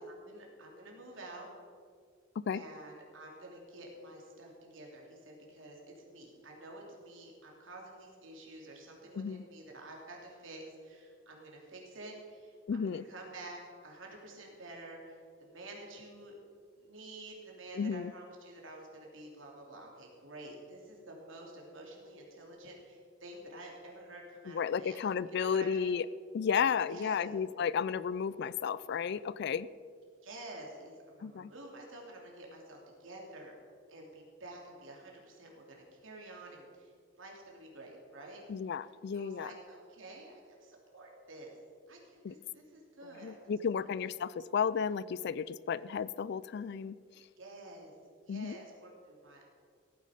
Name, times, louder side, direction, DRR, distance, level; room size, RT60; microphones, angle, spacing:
voice 1, 0.2-1.5 2.5-16.4 16.8-25.0 25.3-26.0 26.9-27.3 30.2-33.6 33.9-36.9 37.2-38.4 39.1-41.5 41.9-43.4 43.8-43.9 47.4-47.9 48.2-49.4, right 2 dB, 75° right, -1 dB, 3.1 m, -49 dB
voice 2, 12.7-13.0 17.7-18.1 24.5-26.0 26.3-29.7 31.2-31.5 38.5-39.5 42.2-42.4 43.2-47.0 48.3-48.6, left 6 dB, 55° left, 19 dB, 0.4 m, -33 dB
16.0 x 9.6 x 5.1 m, 2.1 s
head